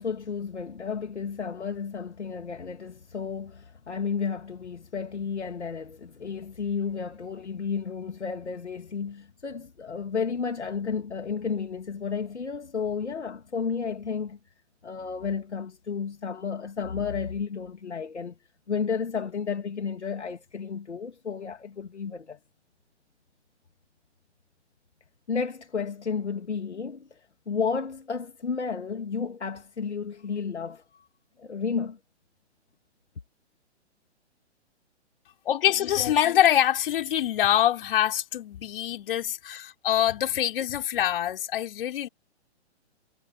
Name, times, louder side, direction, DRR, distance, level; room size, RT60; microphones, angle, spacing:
voice 1, 0.0-14.4 14.8-18.4 18.7-22.4 25.3-31.1 31.4-32.0, left 6 dB, 75° left, 2.8 m, -32 dB
voice 2, 35.5-42.1, left 11 dB, 50° left, 5.3 m, -24 dB
figure-of-eight pair, 125°, 34 cm